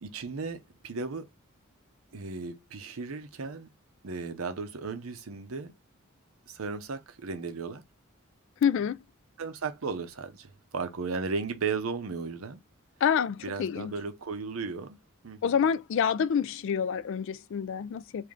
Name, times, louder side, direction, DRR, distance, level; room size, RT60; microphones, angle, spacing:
voice 1, 0.0-1.3 2.1-3.7 4.0-5.7 6.5-7.8 9.4-12.6 13.4-15.0 15.2-15.6, right 4 dB, 75° right, 0.7 m, -35 dB
voice 2, 8.6-9.0 13.0-13.9 15.4-18.3, left 7 dB, 60° left, 0.3 m, -27 dB
3.3 x 2.6 x 3.7 m
head